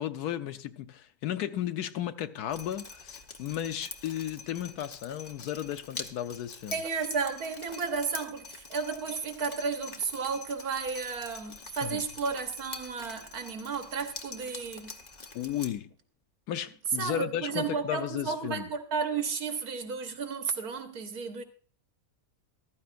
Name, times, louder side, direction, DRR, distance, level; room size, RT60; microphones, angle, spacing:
voice 1, 0.0-6.8 11.8-12.0 15.3-15.9 16.5-18.7, left 11 dB, 90° left, 1.3 m, -34 dB
Drip, 2.5-15.7, left 4 dB, 30° left, 1.0 m, -45 dB
voice 2, 6.7-15.0 17.0-21.4, right 5 dB, 75° right, 1.8 m, -33 dB
14.5 x 13.0 x 2.5 m
omnidirectional pair, 1.6 m